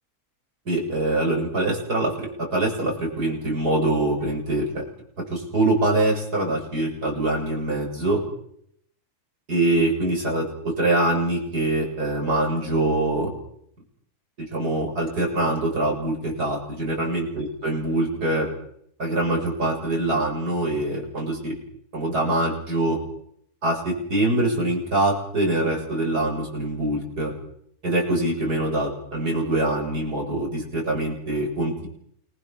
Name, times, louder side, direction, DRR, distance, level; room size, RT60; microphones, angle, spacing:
voice 1, 0.7-4.8 5.2-8.2 9.5-13.3 14.4-18.5 19.0-21.6 21.9-23.0 23.6-27.3 27.8-31.9, right 2 dB, 90° right, 1 dB, 8.1 m, -24 dB
28.5 x 21.5 x 7.4 m, 0.69 s
omnidirectional pair, 1.6 m